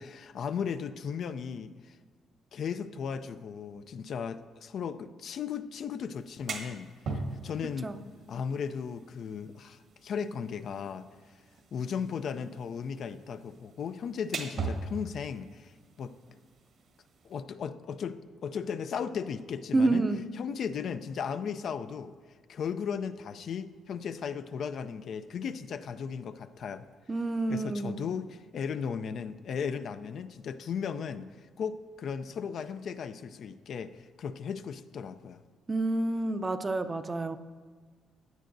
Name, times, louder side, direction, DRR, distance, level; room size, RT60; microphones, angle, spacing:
voice 1, 0.0-2.0 2.5-7.9 8.3-11.0 11.7-15.7 16.0-16.1 17.2-20.1 20.4-22.1 22.5-26.8 27.5-31.3 31.6-35.4, left 7 dB, 65° left, 10 dB, 0.4 m, -36 dB
sound 1, 6.1-17.4, right 3 dB, 70° right, 1.5 m, -42 dB
voice 2, 19.7-20.2 27.1-28.1 35.7-37.4, right 2 dB, 25° right, 9 dB, 0.5 m, -28 dB
15.5 x 9.3 x 2.6 m, 1.5 s
cardioid pair, 90°, 0 cm